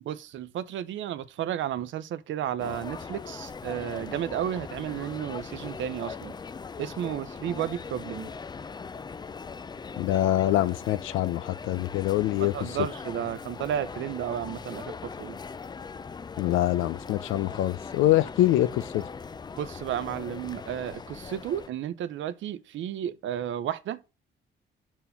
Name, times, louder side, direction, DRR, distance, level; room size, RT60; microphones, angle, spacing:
voice 1, 0.0-6.3 6.8-8.3 12.4-15.4 19.6-24.0, right 10 dB, 75° right, 0.7 m, -33 dB
sound 1, 2.6-21.7, left 5 dB, 20° left, 0.4 m, -40 dB
voice 2, 10.0-12.5 16.4-19.0, left 14 dB, 85° left, 0.5 m, -24 dB
5.5 x 4.5 x 5.7 m
cardioid pair, 90°, 20 cm